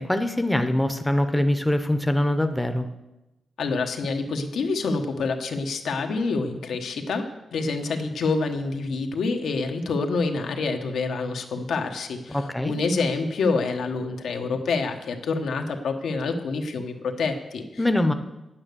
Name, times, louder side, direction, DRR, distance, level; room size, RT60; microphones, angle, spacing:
voice 1, 0.0-2.9 12.3-12.7 17.8-18.1, left 1 dB, 5° left, 7 dB, 0.6 m, -23 dB
voice 2, 3.6-7.3 7.5-17.8, left 4 dB, 90° left, 4 dB, 1.2 m, -27 dB
9.3 x 8.8 x 6.8 m, 0.98 s
wide cardioid pair, 170°, 0 cm